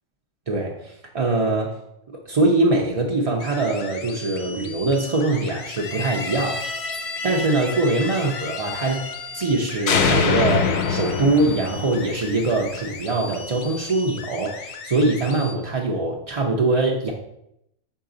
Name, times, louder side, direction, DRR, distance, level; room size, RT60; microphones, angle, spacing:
voice 1, 0.5-1.8 2.3-17.1, right 2 dB, 50° right, -1 dB, 0.4 m, -23 dB
sound 1, 3.4-15.5, left 4 dB, 80° left, 1.1 m, -38 dB
sound 2, 5.7-9.6 9.9-12.9, left 5 dB, 60° left, 0.8 m, -26 dB
5.9 x 4.7 x 3.8 m, 0.80 s
omnidirectional pair, 1.4 m